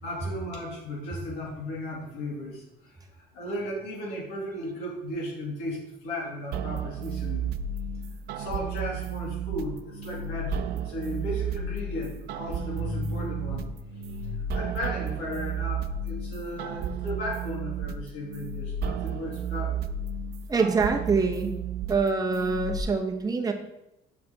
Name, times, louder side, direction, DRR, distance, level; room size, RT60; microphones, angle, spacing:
voice 1, 0.0-7.5 8.4-19.8, left 1 dB, 85° left, -3 dB, 2.4 m, -35 dB
sound 1, 6.5-22.8, right 5 dB, 70° right, 0.4 m, -33 dB
voice 2, 20.5-21.5 21.9-23.5, right 4 dB, 20° right, 2 dB, 0.9 m, -25 dB
7.4 x 5.8 x 2.9 m, 0.87 s
cardioid pair, 110°, 17 cm